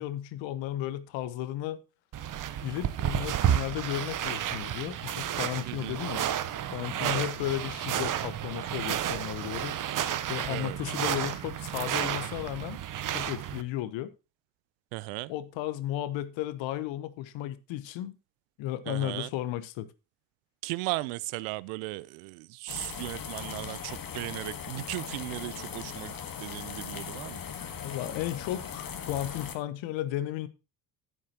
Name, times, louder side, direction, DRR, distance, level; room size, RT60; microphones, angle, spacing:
voice 1, 0.0-1.8 2.6-6.3 6.7-9.8 10.3-12.8 13.1-14.1 15.3-18.1 18.6-19.9 27.8-30.5, left 13 dB, 65° left, 1.0 m, -34 dB
sound 1, 2.1-13.6, right 10 dB, 40° right, 0.8 m, -31 dB
voice 2, 5.7-6.0 7.0-7.3 10.5-10.8 14.9-15.3 18.9-19.3 20.6-27.4, right 21 dB, 70° right, 0.6 m, -36 dB
sound 2, 22.7-29.6, left 7 dB, 45° left, 1.6 m, -39 dB
11.0 x 8.6 x 2.9 m
hypercardioid pair, 60°, 49 cm